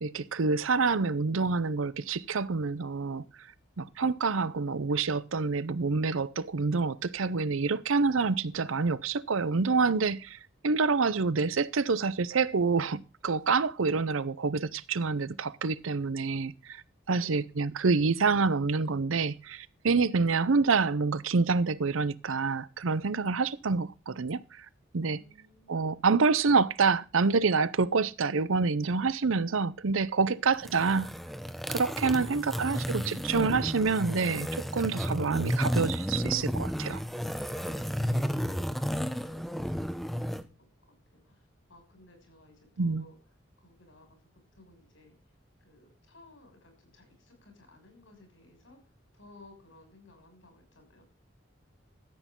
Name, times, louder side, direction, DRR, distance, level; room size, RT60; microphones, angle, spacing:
voice 1, 0.0-3.2 3.8-24.7 24.9-25.2 25.7-31.1 31.7-37.0 42.8-43.0, right 4 dB, 85° right, 0.6 m, -27 dB
voice 2, 17.1-17.5 25.1-26.1 29.2-29.3 29.9-30.5 32.2-32.9 37.6-41.0 41.2-41.4 41.7-43.1 43.6-44.2 44.5-45.1 45.6-48.8 49.1-51.0, left 2 dB, 75° left, 6.3 m, -57 dB
sound 1, 30.5-40.4, equal, ahead, 0.7 m, -32 dB
14.0 x 8.3 x 3.7 m
head